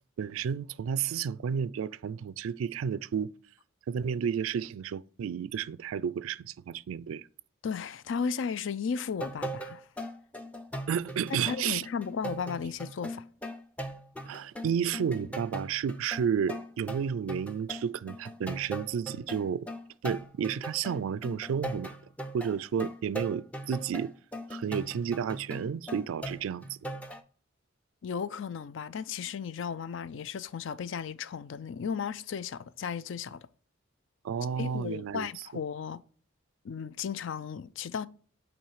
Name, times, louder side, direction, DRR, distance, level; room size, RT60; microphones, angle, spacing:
voice 1, 0.2-3.3 3.9-7.3 10.9-11.8 14.3-19.7 20.0-21.9 22.3-24.1 24.5-26.8 34.2-35.3, right 7 dB, 85° right, 0.3 m, -31 dB
voice 2, 7.6-9.9 11.5-13.2 28.0-33.5 34.6-36.0 36.6-38.1, left 6 dB, 70° left, 0.4 m, -35 dB
sound 1, 9.0-27.2, right 1 dB, 5° left, 0.5 m, -40 dB
8.8 x 3.1 x 4.8 m
head